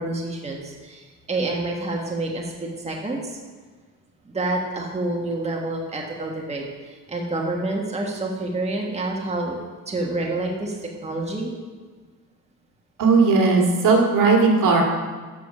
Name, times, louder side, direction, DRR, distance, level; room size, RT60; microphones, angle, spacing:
voice 1, 0.0-3.4 4.2-9.6 9.9-11.5, right 2 dB, 20° right, -1 dB, 1.5 m, -28 dB
voice 2, 13.0-14.8, right 4 dB, 60° right, 0 dB, 2.1 m, -17 dB
8.2 x 6.7 x 5.3 m, 1.4 s
cardioid pair, 85°, 35 cm